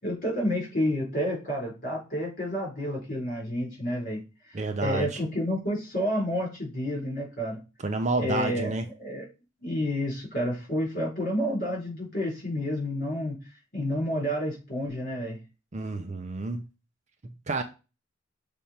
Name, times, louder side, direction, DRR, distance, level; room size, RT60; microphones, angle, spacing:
voice 1, 0.0-7.6 8.2-8.7 9.0-9.2 9.6-13.4 13.7-15.4, equal, 40° left, 4.1 m, -30 dB
voice 2, 4.5-5.2 7.8-8.8 15.7-16.7 17.5-17.6, right 3 dB, 35° right, 0.6 m, -29 dB
6.6 x 3.5 x 4.3 m
head